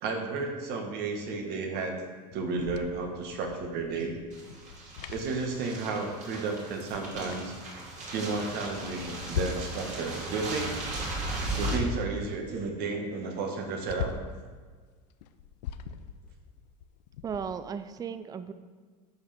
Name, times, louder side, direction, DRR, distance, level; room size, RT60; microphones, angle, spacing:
voice 1, 0.0-2.0 2.3-4.2 5.1-7.5 8.1-11.0 11.6-14.1, right 4 dB, 50° right, 2 dB, 1.7 m, -32 dB
sound 1, 2.3-6.0 6.3-6.4 6.7-8.0 8.5-9.8 10.1-12.7 13.0-13.1 13.4-14.4 15.1-17.6, left 8 dB, 85° left, 0.5 m, -41 dB
sound 2, 4.3-11.8, right 2 dB, 35° right, 2.4 m, -37 dB
voice 2, 17.2-18.5, right 7 dB, 20° right, 12 dB, 0.4 m, -36 dB
11.0 x 5.7 x 3.6 m, 1.5 s
supercardioid pair, 105°, 21 cm